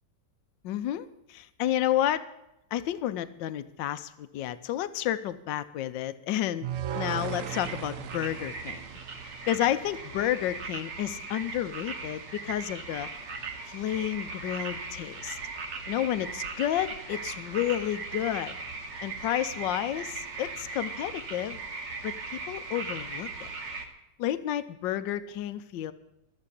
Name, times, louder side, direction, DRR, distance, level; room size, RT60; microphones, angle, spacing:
voice 1, 0.6-2.2 2.7-6.7 6.9-8.9 9.5-13.1 13.6-15.4 15.9-18.5 19.0-21.6 22.0-22.2 22.5-23.5 24.2-25.9, left 12 dB, 80° left, 13 dB, 1.4 m, -31 dB
sound 1, 6.6-9.8, right 10 dB, 60° right, 0.9 m, -37 dB
sound 2, 7.4-23.9, right 4 dB, 75° right, 2.3 m, -39 dB
14.0 x 7.5 x 9.8 m, 0.88 s
omnidirectional pair, 2.0 m